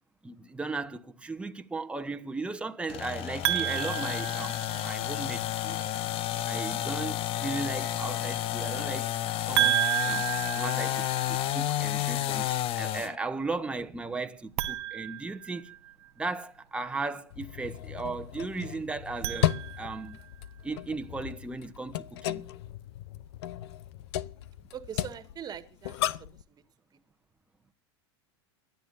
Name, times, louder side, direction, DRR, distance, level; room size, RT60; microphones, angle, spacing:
voice 1, 0.2-5.8 6.5-9.1 9.4-10.3 10.5-15.7 16.2-20.2 20.6-22.5, right 3 dB, 10° right, 1.1 m, -36 dB
sound 1, 2.9-13.2, left 12 dB, 40° left, 0.8 m, -31 dB
sound 2, 3.4-5.1 9.5-11.6 14.5-16.1 19.0-20.2, right 15 dB, 75° right, 0.9 m, -31 dB
sound 3, 17.3-26.4, left 13 dB, 70° left, 0.6 m, -35 dB
voice 2, 24.7-26.1, right 8 dB, 25° right, 1.8 m, -41 dB
29.0 x 12.0 x 2.6 m
hypercardioid pair, 110°, 14 cm